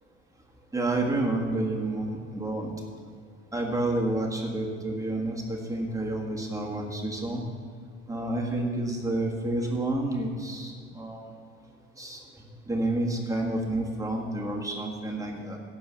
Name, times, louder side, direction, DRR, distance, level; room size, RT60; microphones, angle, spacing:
voice 1, 0.7-2.7 3.5-7.4 8.1-11.3 12.0-12.2 12.7-15.6, right 2 dB, 10° right, -1 dB, 1.7 m, -29 dB
12.0 x 4.6 x 8.4 m, 2.2 s
supercardioid pair, 95°, 34 cm